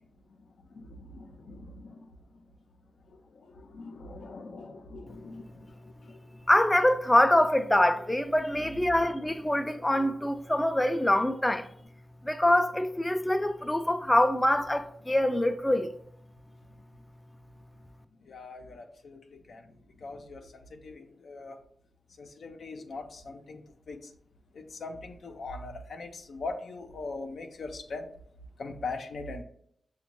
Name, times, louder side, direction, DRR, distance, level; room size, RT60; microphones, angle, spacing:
voice 1, 0.6-2.2 3.1-6.2 18.2-19.7 20.0-21.6 22.2-23.6 23.9-24.1 24.5-28.1 28.6-29.4, left 3 dB, 80° left, 0.5 m, -41 dB
voice 2, 6.5-11.7 12.2-16.0, left 1 dB, 15° left, 0.4 m, -24 dB
5.9 x 2.2 x 2.9 m
cardioid pair, 60°, 0 cm